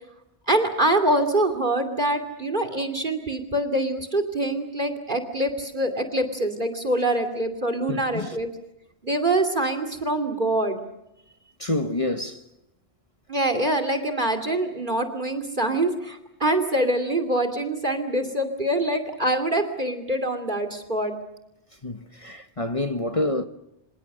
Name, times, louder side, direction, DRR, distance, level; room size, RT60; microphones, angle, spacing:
voice 1, 0.5-8.5 9.0-10.8 13.3-21.1, right 1 dB, 45° right, 2.8 m, -24 dB
voice 2, 7.9-8.4 11.6-12.4 21.8-23.5, left 2 dB, 30° left, 1.4 m, -27 dB
28.0 x 26.5 x 6.5 m
omnidirectional pair, 1.2 m